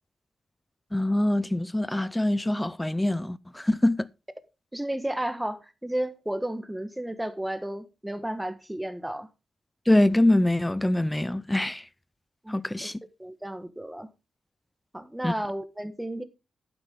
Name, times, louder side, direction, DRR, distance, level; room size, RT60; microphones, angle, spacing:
voice 1, 0.9-4.1 9.9-11.8 12.5-12.9 15.2-15.3, left 1 dB, 10° left, 0.4 m, -24 dB
voice 2, 4.7-9.3 12.4-12.9 13.2-14.1 14.9-16.2, right 1 dB, 5° right, 1.4 m, -33 dB
11.5 x 9.8 x 3.7 m
wide cardioid pair, 125°, 0 cm